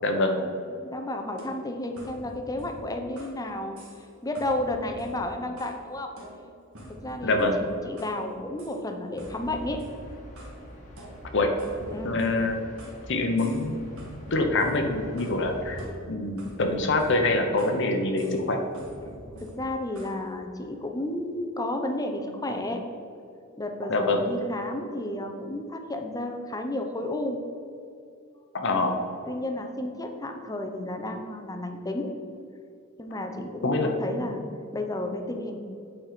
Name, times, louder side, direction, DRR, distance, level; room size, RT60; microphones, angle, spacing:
voice 1, 0.0-0.5 7.2-7.6 11.3-11.5 12.0-12.6 13.1-13.8 14.3-15.8 16.1-18.6 23.9-24.3 28.5-29.0 33.6-34.0, left 2 dB, 60° left, 4 dB, 0.9 m, -25 dB
voice 2, 0.8-3.8 4.2-6.1 7.0-7.5 7.9-9.8 11.9-12.2 19.4-22.8 23.6-27.4 28.7-28.9 29.3-32.1 33.0-34.4 34.7-35.6, left 1 dB, 15° left, 4 dB, 0.7 m, -32 dB
sound 1, 1.4-3.4 3.8-4.1 4.4-5.8 6.2-8.2 8.6-8.8 9.2-10.6 11.0-13.0 13.4-13.7 14.0-15.4 15.8-17.8 18.2-18.4 18.7-20.2, equal, 75° right, 1.9 m, -46 dB
sound 2, 9.2-15.8, equal, 35° left, 1.3 m, -45 dB
8.9 x 4.2 x 5.1 m, 2.5 s
head